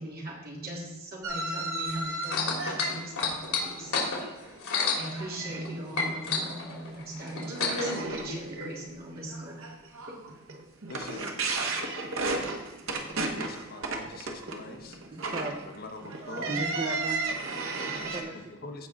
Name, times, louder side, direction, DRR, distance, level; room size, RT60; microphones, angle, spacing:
voice 1, 0.0-4.1 4.9-9.6 10.1-10.2 11.1-11.2 16.3-16.7, right 1 dB, 45° right, -4 dB, 3.0 m, -39 dB
sound 1, 1.2-4.6 4.9-5.6 6.0-6.4 6.8-6.9 7.4-18.2, right 3 dB, 65° right, 1.4 m, -34 dB
sound 2, 2.2-5.7 5.9-8.0 8.8-8.9, left 5 dB, 70° left, 2.6 m, -30 dB
voice 2, 10.9-12.1 13.1-15.0 15.6-16.5 18.3-18.9, left 2 dB, 45° left, 5 dB, 0.9 m, -44 dB
voice 3, 15.1-15.5 16.5-17.7 18.1-18.5 18.8-18.9, right 2 dB, 25° right, 2 dB, 0.7 m, -36 dB
15.5 x 5.3 x 3.6 m, 1.1 s
head